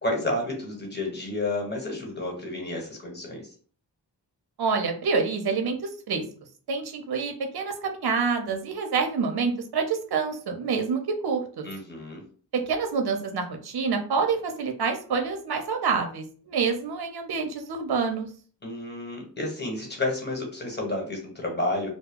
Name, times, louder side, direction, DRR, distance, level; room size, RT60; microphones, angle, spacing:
voice 1, 0.0-3.4 11.6-12.2 18.6-21.9, left 2 dB, 25° left, 0 dB, 1.3 m, -30 dB
voice 2, 4.6-6.2 6.7-11.6 12.5-18.3, right 5 dB, 60° right, 5 dB, 0.7 m, -27 dB
2.2 x 2.1 x 3.6 m, 0.43 s
cardioid pair, 55°, 43 cm